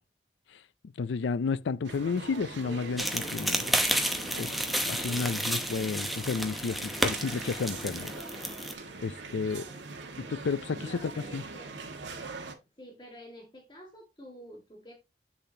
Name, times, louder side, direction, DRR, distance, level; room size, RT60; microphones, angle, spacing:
voice 1, 1.0-3.7 4.4-4.5 4.9-8.2 9.0-9.6 10.2-11.4, left 5 dB, 80° left, 0.4 m, -32 dB
sound 1, 1.8-12.5, right 3 dB, 80° right, 1.5 m, -42 dB
sound 2, 3.0-8.7, equal, ahead, 0.8 m, -31 dB
voice 2, 9.4-9.9 10.8-11.7 12.8-14.9, equal, 25° left, 1.7 m, -49 dB
7.7 x 6.9 x 2.7 m
head